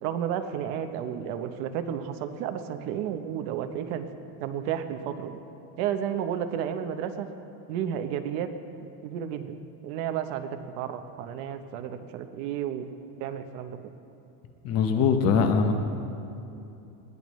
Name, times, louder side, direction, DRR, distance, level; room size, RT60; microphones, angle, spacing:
voice 1, 0.0-4.1 4.4-5.4 5.8-7.3 7.7-8.5 8.8-9.5 9.8-12.9 13.2-13.9, right 9 dB, 50° right, 8 dB, 0.8 m, -32 dB
voice 2, 14.6-15.7, left 6 dB, 35° left, 6 dB, 0.9 m, -22 dB
20.0 x 15.5 x 3.1 m, 2.8 s
cardioid pair, 170°, 43 cm